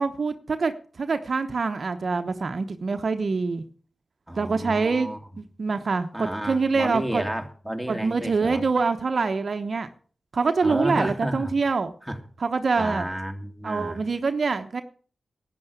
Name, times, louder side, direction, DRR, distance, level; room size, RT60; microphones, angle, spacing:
voice 1, 0.0-3.6 4.4-7.2 7.9-9.9 10.3-11.9 12.4-13.1 13.6-14.8, right 4 dB, 60° right, 8 dB, 0.9 m, -25 dB
voice 2, 4.3-5.2 6.1-8.6 10.6-11.5 12.1-12.2 12.8-14.0, equal, ahead, 3 dB, 2.5 m, -31 dB
10.5 x 9.4 x 6.8 m, 0.44 s
cardioid pair, 45°, 0 cm